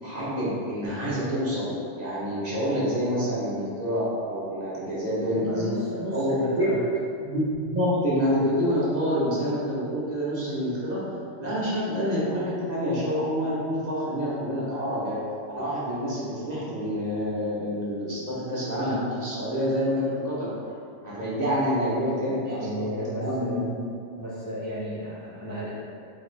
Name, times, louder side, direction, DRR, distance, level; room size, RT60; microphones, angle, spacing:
voice 1, 0.0-5.7 6.1-6.7 7.2-11.0 11.4-15.2 15.5-20.5 21.0-22.9 23.2-23.7, equal, 35° right, -9 dB, 1.0 m, -27 dB
voice 2, 5.3-6.8 22.2-23.6 24.2-25.7, equal, 30° left, -9 dB, 0.4 m, -33 dB
4.0 x 3.1 x 3.2 m, 2.4 s
omnidirectional pair, 1.2 m